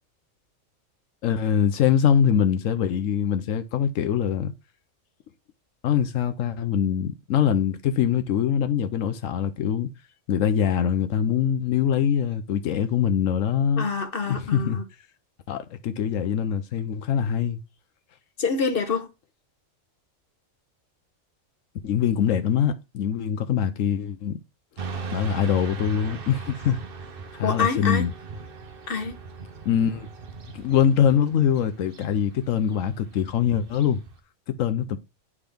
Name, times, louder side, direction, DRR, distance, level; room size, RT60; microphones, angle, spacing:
voice 1, 1.2-4.5 5.8-9.9 10.3-13.9 14.3-14.8 15.5-17.6 21.8-24.4 25.1-26.8 27.3-28.1 29.6-30.1 30.5-34.0 34.5-35.0, left 8 dB, 80° left, 1.0 m, -23 dB
voice 2, 13.8-14.8 18.4-19.1 27.4-28.1 28.9-29.2, left 5 dB, 50° left, 1.0 m, -26 dB
Motorcycle / Traffic noise roadway noise, 24.8-34.2, right 4 dB, 50° right, 1.0 m, -39 dB
9.6 x 3.6 x 3.5 m
omnidirectional pair, 1.3 m